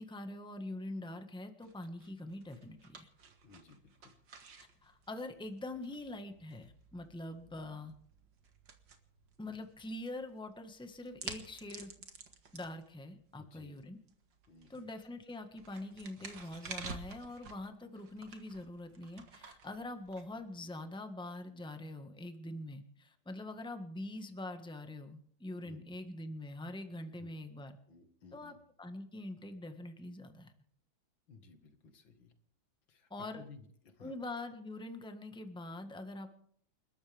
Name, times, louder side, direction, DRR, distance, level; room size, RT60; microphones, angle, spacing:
voice 1, 0.0-3.1 4.6-7.9 9.4-11.9 12.5-14.0 14.7-27.8 28.3-30.5 33.1-33.4 34.0-36.3, left 1 dB, 5° left, 6 dB, 1.5 m, -44 dB
sound 1, 1.6-20.9, right 5 dB, 70° right, 2.6 m, -52 dB
voice 2, 3.4-4.2 13.3-13.8 14.5-14.9 25.6-26.0 27.2-27.3 27.9-28.6 31.3-32.3 32.9-33.1 33.3-34.1, left 4 dB, 80° left, 7 dB, 2.7 m, -57 dB
29.5 x 13.0 x 3.6 m, 0.63 s
omnidirectional pair, 2.1 m